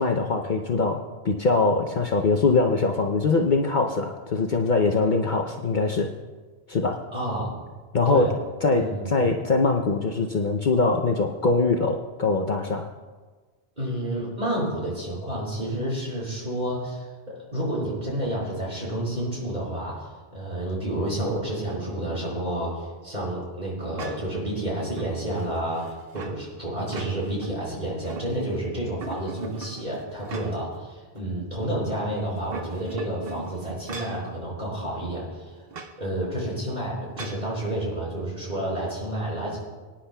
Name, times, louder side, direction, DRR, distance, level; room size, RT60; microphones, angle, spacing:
voice 1, 0.0-6.1 6.7-7.0 7.9-8.3 8.6-12.9, left 3 dB, 50° left, 2 dB, 0.7 m, -23 dB
voice 2, 7.1-7.5 8.0-8.3 8.7-9.1 13.8-20.1 20.3-35.5 36.0-39.6, right 1 dB, 40° right, -5 dB, 4.7 m, -30 dB
sound 1, 24.0-24.4 24.9-26.4 26.8-27.5 27.8-28.6 29.0-30.8 31.2-31.3 32.3-34.3 35.7-36.0 37.2-37.5, right 4 dB, 60° right, 1.0 m, -40 dB
24.0 x 10.0 x 2.2 m, 1.4 s
omnidirectional pair, 1.1 m